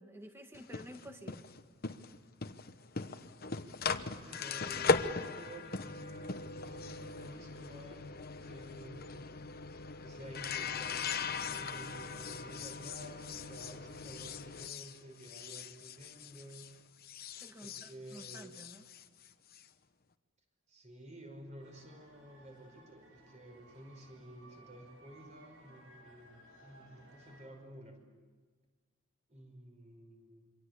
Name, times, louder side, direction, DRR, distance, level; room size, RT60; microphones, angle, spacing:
voice 1, 0.0-1.5 17.4-18.8, equal, 10° right, 5 dB, 2.0 m, -51 dB
sound 1, 0.5-16.7 17.0-19.6, left 4 dB, 45° left, 1.0 m, -39 dB
voice 2, 4.2-9.3 10.0-16.7 17.6-18.5 20.7-28.0 29.3-30.5, right 1 dB, 30° right, 4 dB, 5.5 m, -52 dB
sound 2, 21.6-27.5, right 1 dB, 65° right, 7.2 m, -60 dB
27.5 x 24.5 x 8.3 m, 1.4 s
head